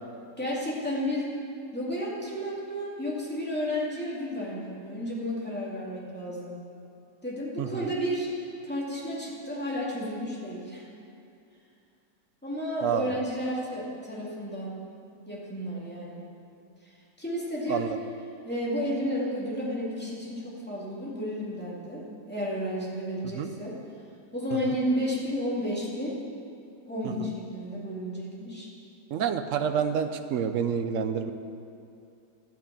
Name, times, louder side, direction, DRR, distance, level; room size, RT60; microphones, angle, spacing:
voice 1, 0.4-1.3 1.7-6.6 7.2-10.8 12.4-14.7 15.3-16.2 16.8-16.9 17.2-17.9 18.4-23.7 24.3-26.2 26.9-28.7, equal, 5° left, -6 dB, 2.2 m, -32 dB
voice 2, 7.6-7.9 12.8-13.2 17.7-18.0 23.3-23.5 24.7-24.8 27.2-27.3 29.1-31.3, right 7 dB, 70° right, 8 dB, 0.7 m, -28 dB
12.5 x 6.0 x 8.5 m, 2.6 s
omnidirectional pair, 1.9 m